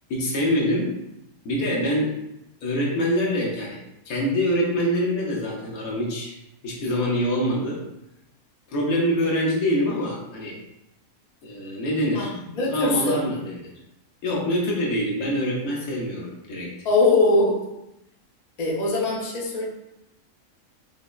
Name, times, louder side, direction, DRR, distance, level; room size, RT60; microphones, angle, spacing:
voice 1, 0.1-0.9 1.4-2.1 2.6-3.8 4.1-6.3 6.6-7.8 8.7-10.6 11.4-12.4 12.7-13.7 14.2-16.7, equal, 80° left, -3 dB, 1.3 m, -25 dB
voice 2, 12.1-13.2 16.8-17.6 18.6-19.7, left 2 dB, 40° left, -5 dB, 0.7 m, -22 dB
5.4 x 2.0 x 2.3 m, 0.87 s
omnidirectional pair, 1.5 m